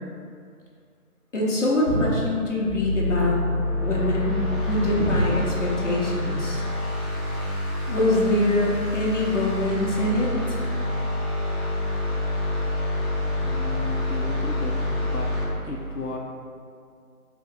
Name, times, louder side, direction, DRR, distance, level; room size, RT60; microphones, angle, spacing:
voice 1, 1.3-3.4 3.8-6.6 7.9-10.6, left 1 dB, 55° left, -5 dB, 1.0 m, -24 dB
sound 1, 2.7-15.4, left 1 dB, ahead, 0.4 m, -27 dB
voice 2, 12.7-16.2, left 3 dB, 90° left, 0 dB, 0.6 m, -36 dB
3.5 x 2.9 x 3.6 m, 2.2 s
figure-of-eight pair, 165°, 45 cm